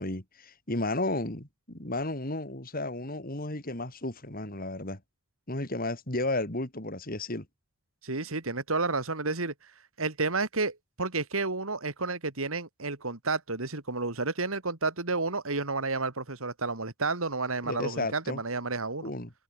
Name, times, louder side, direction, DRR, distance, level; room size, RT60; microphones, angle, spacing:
voice 1, 0.0-5.0 5.5-7.5 17.6-18.4 19.0-19.3, left 2 dB, 45° left, 4.0 m, -33 dB
voice 2, 8.0-9.5 10.0-19.1, right 3 dB, 80° right, 2.9 m, -31 dB
head